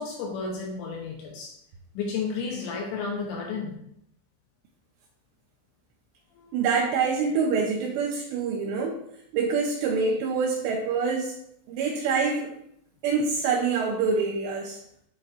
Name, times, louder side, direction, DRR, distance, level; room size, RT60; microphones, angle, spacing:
voice 1, 0.0-1.6 2.0-3.8 6.4-6.6, left 5 dB, 80° left, 0 dB, 2.8 m, -32 dB
voice 2, 6.5-9.0 9.3-11.4 11.7-12.5 13.0-14.8, right 5 dB, 85° right, 0 dB, 2.6 m, -26 dB
11.0 x 4.1 x 2.6 m, 0.73 s
omnidirectional pair, 5.7 m